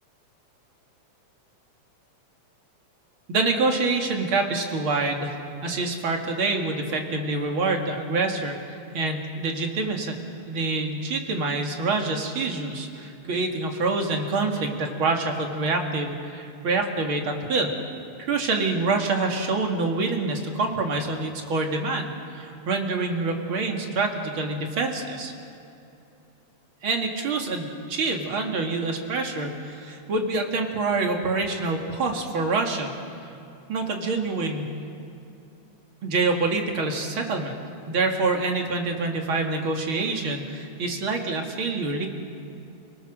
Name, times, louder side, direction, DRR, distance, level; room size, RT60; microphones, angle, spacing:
voice 1, 3.3-10.2 10.5-17.7 18.2-25.3 26.8-32.9 33.2-33.3 33.7-34.8 36.0-37.5 37.9-42.1, right 3 dB, 45° right, 2 dB, 2.7 m, -26 dB
29.5 x 18.5 x 6.5 m, 2.7 s
omnidirectional pair, 3.4 m